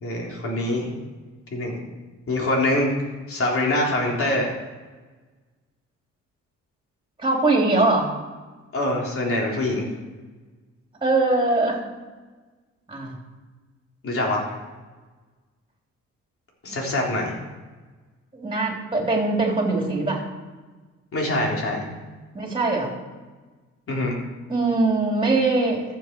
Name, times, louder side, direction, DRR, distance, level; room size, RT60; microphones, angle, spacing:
voice 1, 0.0-0.9 1.5-1.8 2.3-2.9 3.3-4.5 8.7-9.9 14.0-14.4 16.6-17.3 21.1-22.0 23.9-24.2, left 1 dB, 45° left, -2 dB, 3.6 m, -24 dB
voice 2, 7.2-8.1 11.0-11.8 12.9-13.2 16.7-16.8 18.3-20.2 22.3-22.9 24.5-25.8, right 2 dB, 15° right, 0 dB, 3.6 m, -22 dB
14.0 x 7.4 x 4.7 m, 1.3 s
cardioid pair, 90°, 30 cm